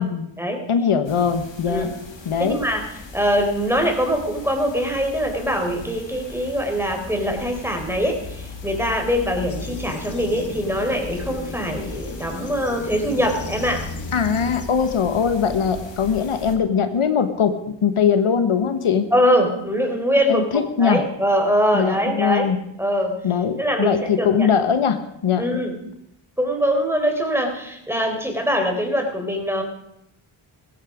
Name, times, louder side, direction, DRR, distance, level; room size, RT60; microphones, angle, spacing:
voice 1, 0.7-1.9 2.3-2.6 14.1-19.1 20.3-21.0 21.7-22.6 23.2-25.5, left 7 dB, 80° left, 8 dB, 1.3 m, -21 dB
sound 1, 1.0-16.6, left 3 dB, 60° left, 2.7 m, -38 dB
voice 2, 2.4-13.9 19.1-22.5 22.8-23.2 23.6-24.5 25.4-25.8 26.4-29.6, equal, 5° right, 3 dB, 4.0 m, -23 dB
sound 2, 9.5-14.7, left 4 dB, 35° left, 1.2 m, -35 dB
15.5 x 15.0 x 5.0 m, 0.78 s
cardioid pair, 55°, 49 cm